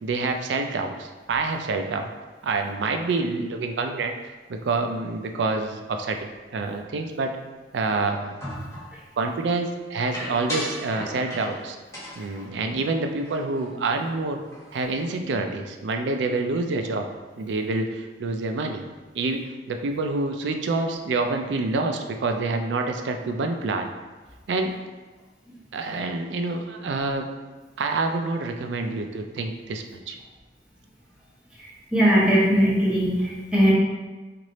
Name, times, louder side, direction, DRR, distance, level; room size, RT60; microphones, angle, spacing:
voice 1, 0.0-2.1 2.4-4.1 4.5-7.3 7.7-8.6 9.2-11.8 12.2-14.4 14.7-17.1 17.4-18.8 19.1-23.9 24.5-24.8 25.7-27.3 27.8-30.2, right 3 dB, 80° right, 5 dB, 0.4 m, -27 dB
sound 1, 8.4-9.0 10.1-11.6 11.9-13.7 14.0-14.1 14.4-14.9, equal, 15° left, 1.2 m, -36 dB
voice 2, 31.9-33.7, equal, 5° right, -7 dB, 0.9 m, -19 dB
3.2 x 2.5 x 4.0 m, 1.3 s
head